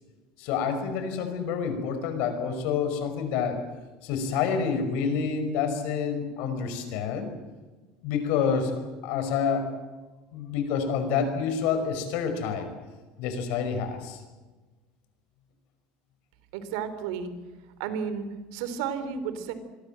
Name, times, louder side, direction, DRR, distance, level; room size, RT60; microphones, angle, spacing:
voice 1, 0.4-3.6 4.0-7.3 8.0-9.7 10.3-12.7 13.2-14.2, left 6 dB, 60° left, 8 dB, 5.6 m, -28 dB
voice 2, 16.5-17.3 17.8-18.3 18.5-19.5, right 7 dB, 80° right, 11 dB, 3.5 m, -32 dB
27.5 x 22.5 x 7.7 m, 1.3 s
cardioid pair, 180°, 3 cm